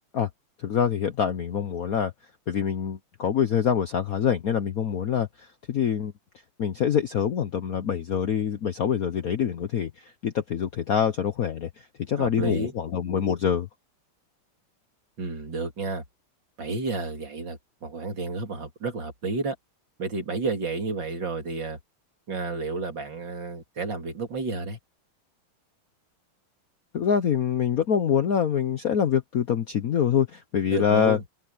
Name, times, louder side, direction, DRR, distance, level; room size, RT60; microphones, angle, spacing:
voice 1, 0.6-2.1 2.5-6.1 6.6-11.7 12.1-13.7 26.9-31.2, left 8 dB, 55° left, 1.0 m, -25 dB
voice 2, 12.2-12.7 15.2-16.0 16.6-19.6 20.0-21.8 22.3-24.8 30.7-31.2, right 3 dB, 55° right, 3.5 m, -31 dB
open air
omnidirectional pair, 2.4 m